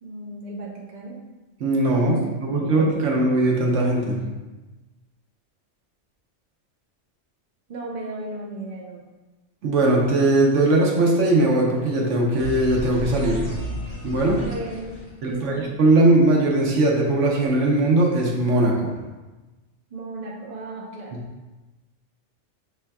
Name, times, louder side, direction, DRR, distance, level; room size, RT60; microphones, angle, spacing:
voice 1, 0.0-1.2 1.9-3.1 7.7-9.1 13.2-13.6 14.4-15.6 19.9-21.2, right 2 dB, 45° right, -2 dB, 0.7 m, -36 dB
voice 2, 1.6-4.2 9.6-13.4 14.0-14.4 15.2-18.9, right 2 dB, 80° right, -2 dB, 1.1 m, -20 dB
sound 1, 12.4-15.7, equal, 35° left, 1.3 m, -33 dB
5.9 x 3.3 x 2.2 m, 1.2 s
omnidirectional pair, 1.2 m